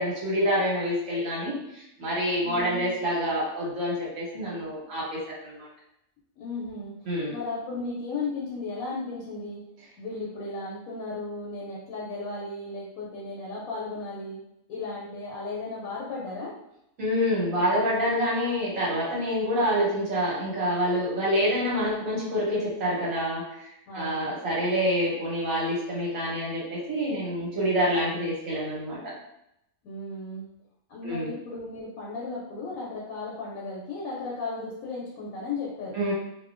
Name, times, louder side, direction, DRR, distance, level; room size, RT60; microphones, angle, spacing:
voice 1, 0.0-5.7 7.1-7.3 17.0-23.7 23.9-29.0 31.0-31.3 35.9-36.1, equal, 70° right, -6 dB, 1.4 m, -27 dB
voice 2, 2.4-2.9 6.4-9.6 10.0-14.4 14.7-16.5 23.9-24.3 29.8-30.5 30.9-35.9, left 3 dB, 85° left, -4 dB, 1.1 m, -35 dB
2.8 x 2.2 x 2.4 m, 0.82 s
omnidirectional pair, 1.4 m